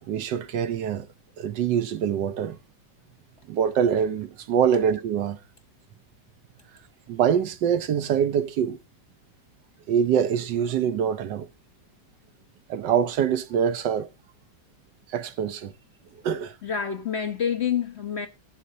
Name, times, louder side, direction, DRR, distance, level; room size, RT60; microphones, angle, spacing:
voice 1, 0.1-1.1 1.4-2.6 3.5-5.4 7.1-8.8 9.9-11.5 12.7-14.1 15.1-15.7 16.2-16.5, right 8 dB, 75° right, 1.4 m, -24 dB
voice 2, 16.6-18.3, left 8 dB, 50° left, 0.8 m, -27 dB
18.0 x 7.4 x 2.7 m
omnidirectional pair, 1.9 m